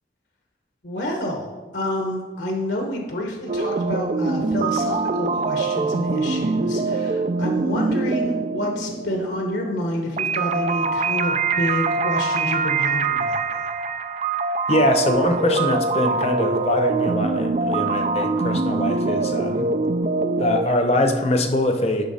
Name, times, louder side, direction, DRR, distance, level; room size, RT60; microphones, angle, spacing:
voice 1, 0.8-13.6, left 1 dB, 70° left, 1 dB, 1.1 m, -28 dB
sound 1, 3.5-20.7, right 3 dB, 35° right, 0.3 m, -24 dB
voice 2, 14.7-19.7 20.4-22.1, left 1 dB, 35° left, 5 dB, 0.8 m, -22 dB
10.5 x 5.7 x 4.2 m, 1.3 s
head